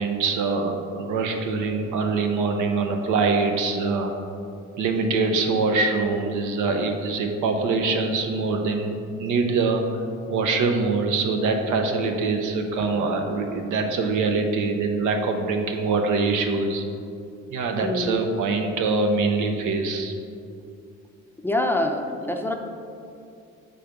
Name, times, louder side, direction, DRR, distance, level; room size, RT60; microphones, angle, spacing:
voice 1, 0.0-4.1 4.8-8.9 9.2-9.8 10.3-16.8 17.5-20.1, right 4 dB, 85° right, 5 dB, 0.7 m, -24 dB
voice 2, 17.8-18.3 21.4-22.5, left 1 dB, 5° left, 3 dB, 0.5 m, -25 dB
5.0 x 3.9 x 5.8 m, 2.5 s
cardioid pair, 90°, 30 cm